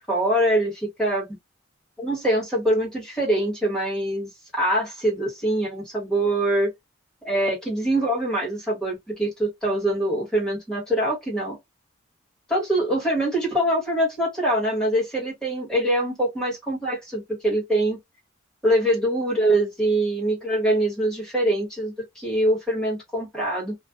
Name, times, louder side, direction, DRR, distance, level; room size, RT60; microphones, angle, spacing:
voice 1, 0.1-1.3 2.0-6.7 7.2-11.6 12.5-18.0 18.6-23.7, right 1 dB, 5° left, 1.2 m, -24 dB
2.4 x 2.1 x 2.3 m
head